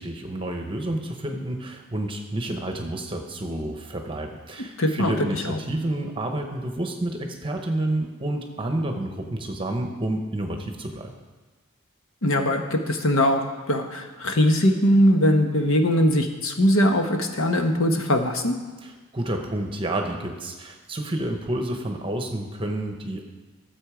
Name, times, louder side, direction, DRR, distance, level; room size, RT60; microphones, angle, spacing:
voice 1, 0.0-11.1 18.8-23.2, right 1 dB, 25° right, 4 dB, 1.0 m, -29 dB
voice 2, 4.8-5.6 12.2-13.4 13.7-18.5, equal, 75° left, 4 dB, 1.1 m, -21 dB
13.5 x 7.4 x 5.0 m, 1.3 s
head